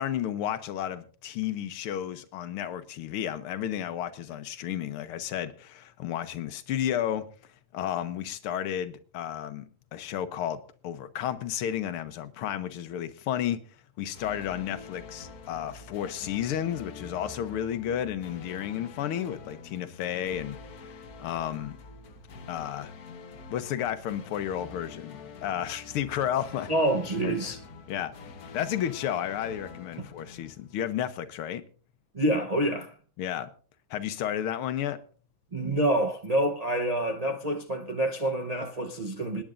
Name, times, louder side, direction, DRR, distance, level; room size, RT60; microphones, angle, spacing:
voice 1, 0.0-7.3 7.7-9.7 9.9-13.6 14.0-21.8 22.5-22.9 23.5-26.7 27.2-27.4 27.9-28.1 28.5-31.6 33.2-33.5 33.9-35.0, left 10 dB, 85° left, 1.8 m, -32 dB
sound 1, 14.1-31.2, left 4 dB, 55° left, 1.3 m, -46 dB
voice 2, 26.7-27.6 30.0-30.1 32.1-32.9 35.5-39.4, right 1 dB, 60° right, 0.4 m, -27 dB
27.0 x 10.0 x 2.5 m
omnidirectional pair, 2.3 m